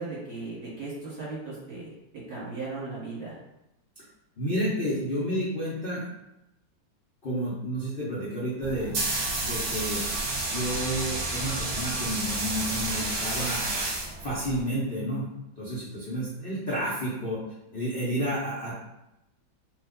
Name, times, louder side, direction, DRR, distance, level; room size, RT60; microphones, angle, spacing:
voice 1, 0.0-1.9 2.3-3.3, right 3 dB, 40° right, -8 dB, 1.3 m, -37 dB
voice 2, 4.4-6.0 7.2-8.9 9.4-10.1 10.4-13.6 14.2-15.2 15.6-17.4 17.7-18.7, equal, 75° left, -8 dB, 0.5 m, -30 dB
sound 1, 8.6-14.6, right 2 dB, 60° right, 1.2 m, -30 dB
2.9 x 2.3 x 3.6 m, 0.89 s
omnidirectional pair, 2.1 m